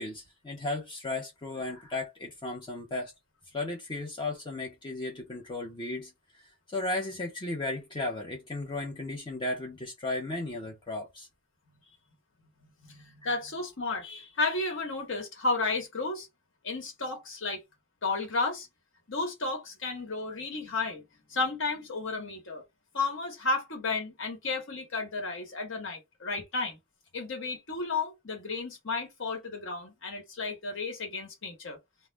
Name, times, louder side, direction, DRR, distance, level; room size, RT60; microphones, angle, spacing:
voice 1, 0.0-3.1 3.5-6.1 6.7-11.3 13.2-13.4, left 2 dB, 25° left, 0.6 m, -35 dB
voice 2, 12.6-16.3 16.6-17.6 18.0-18.7 19.1-21.0 21.3-22.6 22.9-26.8 27.1-31.8, left 3 dB, 65° left, 1.2 m, -33 dB
2.4 x 2.1 x 3.1 m
head